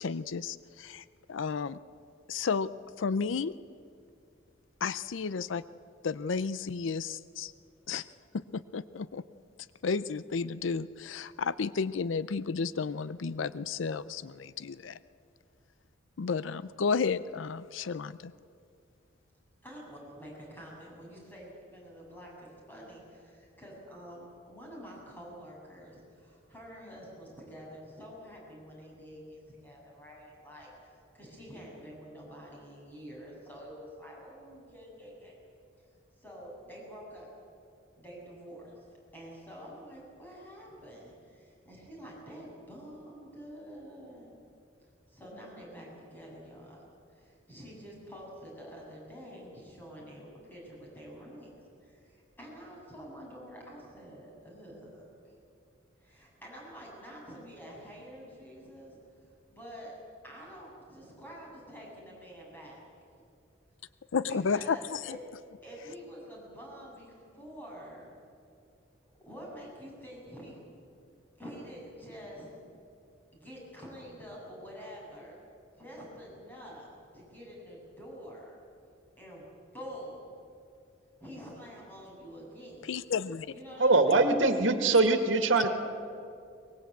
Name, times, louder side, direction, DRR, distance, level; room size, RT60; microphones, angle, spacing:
voice 1, 0.0-1.8 2.3-2.7 3.0-3.5 4.8-5.6 6.0-7.5 7.9-8.0 8.3-9.2 9.8-15.0 16.2-18.3 64.1-65.2 82.8-83.5, left 5 dB, 80° left, 16 dB, 0.5 m, -32 dB
voice 2, 19.6-30.7 31.1-35.4 36.2-37.3 38.0-38.7 39.1-44.3 45.1-46.8 47.1-55.1 56.0-59.0 59.5-59.9 60.2-62.8 64.2-65.2 65.6-68.2 69.3-70.6 71.4-72.6 73.3-75.4 75.8-78.6 79.2-80.3 81.2-82.8 83.5-84.3, equal, 10° left, -3 dB, 7.6 m, -47 dB
voice 3, 83.8-85.7, right 3 dB, 90° right, 6 dB, 2.0 m, -23 dB
23.0 x 20.5 x 8.2 m, 2.4 s
head